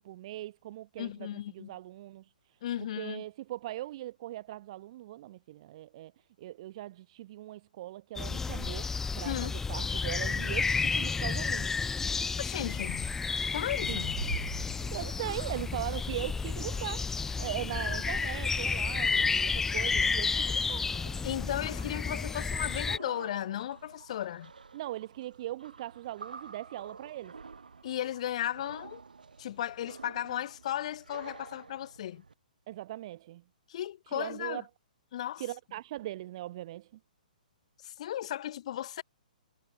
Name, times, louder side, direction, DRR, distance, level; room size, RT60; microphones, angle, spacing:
voice 1, 0.0-2.3 2.8-6.1 6.4-11.8 13.9-14.0 14.9-17.0 17.4-20.9 24.7-27.3 32.7-33.4 34.1-34.6 35.4-36.9, right 15 dB, 40° right, 2.3 m, -40 dB
voice 2, 1.0-1.7 2.6-3.2 9.2-9.5 12.4-13.2 13.5-14.2 21.2-24.5 27.8-29.0 29.4-32.2 33.7-34.6 35.1-35.4 37.8-39.0, left 12 dB, 45° left, 1.7 m, -35 dB
sound 1, 8.2-23.0, left 4 dB, 10° left, 0.9 m, -31 dB
sound 2, 13.6-32.3, right 5 dB, 70° right, 2.7 m, -48 dB
figure-of-eight pair, 120°, 5 cm